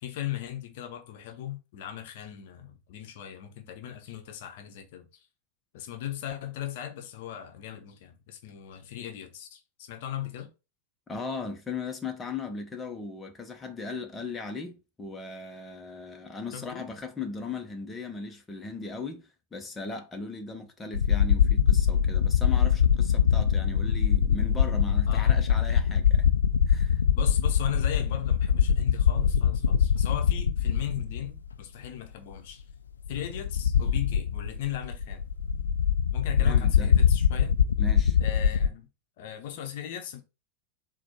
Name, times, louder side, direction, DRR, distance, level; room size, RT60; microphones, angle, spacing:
voice 1, 0.0-5.3 5.7-10.5 16.5-16.9 25.1-25.3 27.1-32.6 33.1-35.2 36.1-37.6 38.2-38.9 39.2-40.2, left 11 dB, 50° left, 0.7 m, -38 dB
voice 2, 11.1-26.3 26.7-27.0 36.4-36.9 37.8-38.2, left 4 dB, 15° left, 0.7 m, -38 dB
sound 1, 20.9-31.5 31.8-31.9 33.1-38.7, left 8 dB, 70° left, 0.3 m, -23 dB
4.2 x 2.2 x 4.4 m
figure-of-eight pair, 90°, 0 cm